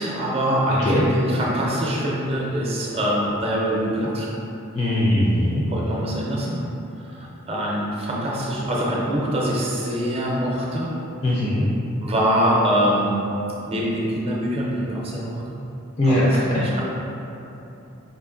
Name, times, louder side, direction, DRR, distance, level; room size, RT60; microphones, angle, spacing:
voice 1, 0.0-4.3 5.7-6.6 7.0-10.9 12.0-13.3 13.7-15.6 16.0-16.3 16.6-16.8, equal, 30° right, -4 dB, 0.5 m, -24 dB
voice 2, 4.7-5.6 11.2-11.6 16.0-16.4, left 1 dB, 30° left, -8 dB, 0.4 m, -20 dB
5.0 x 2.5 x 2.5 m, 3.0 s
head